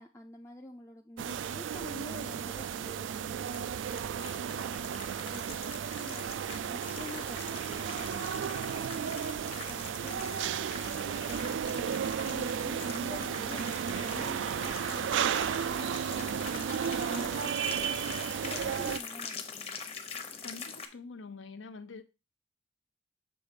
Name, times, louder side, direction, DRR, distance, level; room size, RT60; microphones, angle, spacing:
voice 1, 0.0-18.0 18.4-19.8, left 2 dB, 15° left, 0.4 m, -49 dB
sound 1, 1.2-19.0, right 8 dB, 80° right, 0.3 m, -34 dB
sound 2, 3.4-20.9, left 5 dB, 30° left, 0.8 m, -44 dB
sound 3, 7.7-17.5, right 2 dB, 60° right, 0.7 m, -58 dB
voice 2, 20.4-22.0, left 4 dB, 85° left, 0.7 m, -45 dB
7.0 x 3.5 x 5.1 m
head